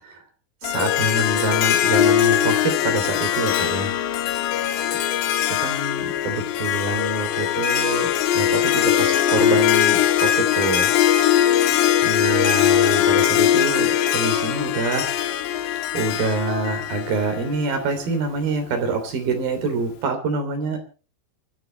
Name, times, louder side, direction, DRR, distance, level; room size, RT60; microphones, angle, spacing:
Harp, 0.6-17.9, left 10 dB, 85° left, 3.3 m, -21 dB
voice 1, 0.6-3.9 5.6-8.1 8.3-10.9 11.4-11.5 12.0-15.1 15.9-20.8, right 3 dB, 60° right, 6 dB, 5.0 m, -26 dB
24.5 x 11.5 x 4.2 m, 0.37 s
omnidirectional pair, 4.8 m